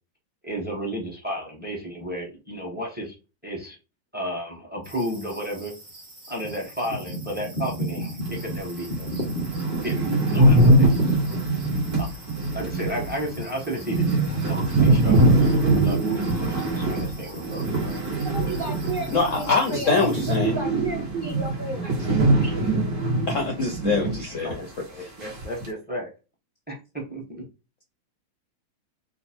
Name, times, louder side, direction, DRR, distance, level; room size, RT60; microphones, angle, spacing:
voice 1, 0.4-3.1 3.4-3.7 4.1-5.7 6.3-9.1 9.8-10.9 12.0-12.1 12.5-17.9 24.0-26.1 26.7-26.8 27.1-27.4, equal, 10° right, -1 dB, 0.5 m, -33 dB
sound 1, 4.8-20.4, right 1 dB, 30° right, 1.1 m, -35 dB
sound 2, 8.5-8.6 9.0-9.1 9.2-19.5 19.7-24.2 24.5-24.6 25.2-25.7, right 2 dB, 55° right, 1.6 m, -22 dB
voice 2, 18.2-22.0, right 3 dB, 75° right, -1 dB, 0.4 m, -33 dB
voice 3, 19.1-20.5 22.4-22.5 23.3-24.5, left 4 dB, 70° left, 2 dB, 0.7 m, -24 dB
3.8 x 2.0 x 4.2 m, 0.30 s
omnidirectional pair, 2.1 m